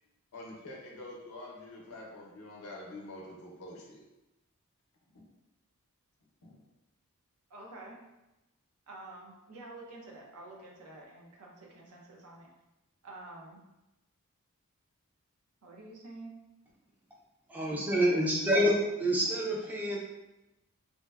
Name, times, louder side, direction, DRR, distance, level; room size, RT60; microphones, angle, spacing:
voice 1, 0.3-4.0 6.4-6.6, left 1 dB, 80° left, -2 dB, 0.6 m, -46 dB
voice 2, 7.5-8.0 8.9-12.5 13.0-13.6 15.6-16.3 17.8-18.2 18.5-18.9 19.8-20.0, right 2 dB, 80° right, -2 dB, 0.6 m, -48 dB
voice 3, 17.5-20.0, equal, 5° right, -4 dB, 0.4 m, -27 dB
2.8 x 2.0 x 2.2 m, 0.98 s
head